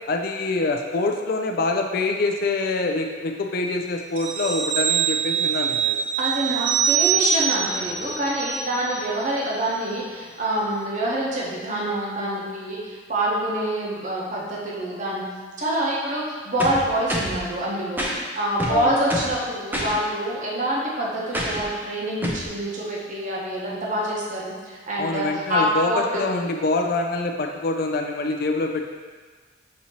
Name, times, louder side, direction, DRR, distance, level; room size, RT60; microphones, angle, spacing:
voice 1, 0.1-6.0 18.7-18.9 25.0-28.9, left 3 dB, 50° left, 4 dB, 0.4 m, -25 dB
sound 1, 4.2-9.3 9.6-9.7, right 8 dB, 70° right, 0.3 m, -24 dB
voice 2, 6.2-15.2 15.6-26.2, right 1 dB, 40° right, -4 dB, 0.8 m, -26 dB
sound 2, 16.6-17.4 18.0-18.2 18.6-19.4 19.7-20.0 21.3-21.7 22.2-22.5, equal, 10° right, 0.5 m, -27 dB
6.0 x 2.7 x 2.9 m, 1.5 s
head